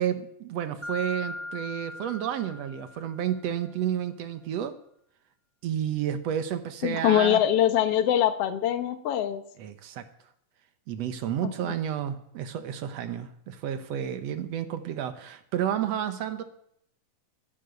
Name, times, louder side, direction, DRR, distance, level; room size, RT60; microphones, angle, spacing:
voice 1, 0.0-4.7 5.6-7.4 9.6-10.1 10.9-16.4, right 10 dB, 65° right, 10 dB, 1.7 m, -31 dB
Mallet percussion, 0.8-3.4, left 1 dB, 20° left, 0.7 m, -39 dB
voice 2, 6.8-9.4, left 11 dB, 70° left, 11 dB, 1.4 m, -23 dB
13.5 x 10.5 x 7.9 m, 0.71 s
omnidirectional pair, 4.1 m